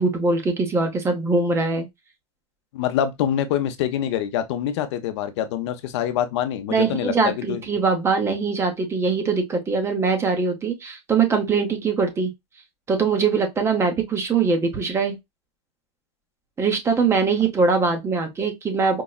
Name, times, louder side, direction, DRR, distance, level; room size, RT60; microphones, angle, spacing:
voice 1, 0.0-1.9 6.7-12.3 12.9-15.1 16.6-19.0, right 4 dB, 15° right, 0.7 m, -22 dB
voice 2, 2.7-7.6, left 10 dB, 70° left, 0.7 m, -25 dB
4.5 x 2.0 x 2.2 m
supercardioid pair, 135°, 15 cm